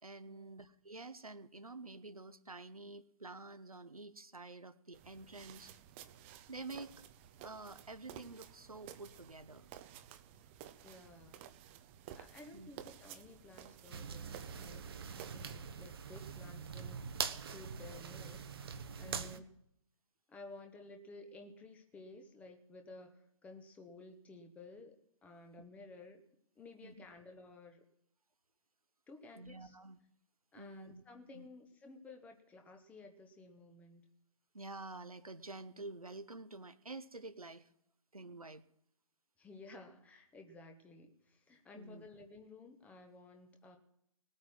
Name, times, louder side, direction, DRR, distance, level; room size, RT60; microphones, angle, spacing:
voice 1, 0.0-5.7 6.5-7.0 7.4-9.7 12.5-12.7 19.0-19.4 26.8-27.1 29.4-30.0 30.5-31.0 31.3-31.5 34.5-37.7 38.1-38.6 41.7-42.1, right 3 dB, 85° right, 11 dB, 1.1 m, -49 dB
sound 1, 4.9-15.6, right 10 dB, 20° right, 0.7 m, -54 dB
voice 2, 10.8-11.4 12.1-14.9 15.3-18.5 18.9-19.4 20.3-24.9 25.2-26.2 26.6-27.8 29.1-29.8 30.5-34.0 39.4-43.8, left 3 dB, 10° left, 5 dB, 1.0 m, -55 dB
sound 2, 13.9-19.4, right 6 dB, 45° right, 1.0 m, -43 dB
19.0 x 8.9 x 6.2 m, 0.75 s
figure-of-eight pair, 135°, 18 cm